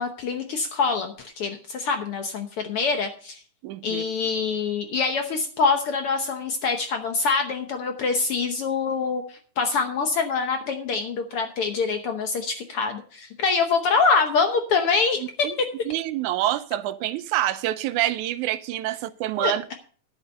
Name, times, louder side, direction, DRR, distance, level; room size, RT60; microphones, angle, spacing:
voice 1, 0.0-3.4 3.8-15.7 19.4-19.7, left 4 dB, 65° left, 1.5 m, -25 dB
voice 2, 3.6-4.1 15.4-15.5 15.9-19.7, right 13 dB, 85° right, 2.1 m, -27 dB
10.5 x 8.4 x 5.3 m
omnidirectional pair, 3.5 m